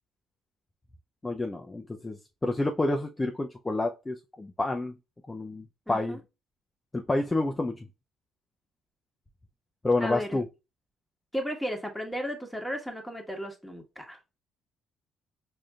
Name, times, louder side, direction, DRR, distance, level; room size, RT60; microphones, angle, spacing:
voice 1, 1.2-4.9 5.3-6.2 6.9-7.8 9.8-10.4, left 2 dB, 20° left, 0.5 m, -29 dB
voice 2, 5.9-6.2 10.0-10.4 11.3-14.2, equal, ahead, 1.4 m, -34 dB
4.9 x 2.7 x 2.3 m
hypercardioid pair, 60°, 0 cm